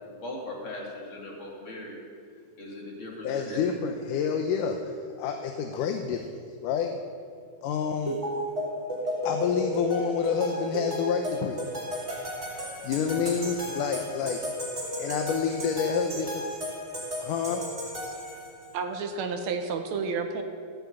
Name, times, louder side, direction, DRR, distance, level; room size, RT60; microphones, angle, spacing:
voice 1, 0.0-2.0 2.6-3.6, left 1 dB, 40° left, -2 dB, 3.5 m, -39 dB
voice 2, 3.2-7.0 7.6-8.2 9.2-11.6 12.8-14.4 15.0-16.5 17.2-17.6, left 6 dB, 85° left, 4 dB, 2.4 m, -28 dB
sound 1, 8.1-18.7, equal, 20° right, 4.3 m, -34 dB
voice 3, 18.7-20.4, right 5 dB, 70° right, 6 dB, 2.2 m, -31 dB
16.0 x 7.8 x 8.6 m, 2.2 s
omnidirectional pair, 3.6 m